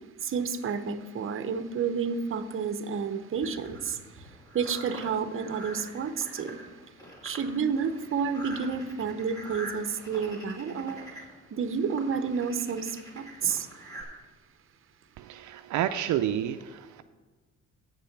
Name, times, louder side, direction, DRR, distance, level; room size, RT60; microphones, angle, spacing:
voice 1, 0.2-3.9 4.5-6.6 7.2-11.0 11.5-12.9 13.2-13.7, right 6 dB, 45° right, 10 dB, 0.8 m, -30 dB
sound 1, 3.4-14.0, right 1 dB, 10° left, 2.8 m, -45 dB
voice 2, 15.2-17.0, right 11 dB, 75° right, 8 dB, 0.4 m, -30 dB
8.3 x 6.9 x 5.9 m, 1.3 s
cardioid pair, 90°, 30 cm